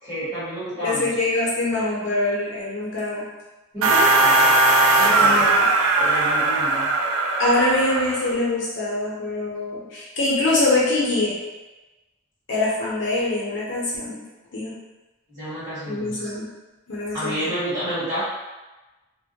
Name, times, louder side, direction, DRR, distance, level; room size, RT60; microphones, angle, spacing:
voice 1, 0.0-1.1 3.7-4.5 4.9-5.5 5.9-6.9 15.3-16.3 17.1-18.2, equal, 15° right, -15 dB, 1.0 m, -29 dB
voice 2, 0.8-3.3 5.2-5.7 7.4-11.3 12.5-14.2 14.5-14.8 15.9-16.5 16.9-17.5, left 2 dB, 60° left, -5 dB, 0.7 m, -24 dB
sound 1, 3.8-8.3, right 2 dB, 85° right, 0.3 m, -19 dB
2.2 x 2.1 x 2.7 m, 1.1 s
head